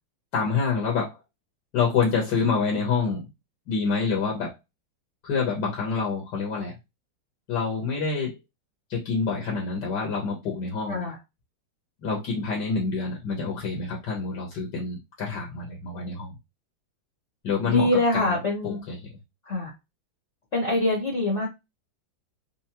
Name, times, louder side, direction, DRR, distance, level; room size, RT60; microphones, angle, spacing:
voice 1, 0.3-1.2 1.7-3.2 3.7-4.6 5.2-6.7 7.5-8.3 8.9-11.1 12.0-16.4 17.4-18.4 18.6-19.1, left 5 dB, 55° left, 1.6 m, -27 dB
voice 2, 17.7-18.8 19.5-19.7 20.5-21.5, left 2 dB, 40° left, 1.3 m, -24 dB
4.6 x 2.2 x 2.8 m
omnidirectional pair, 2.3 m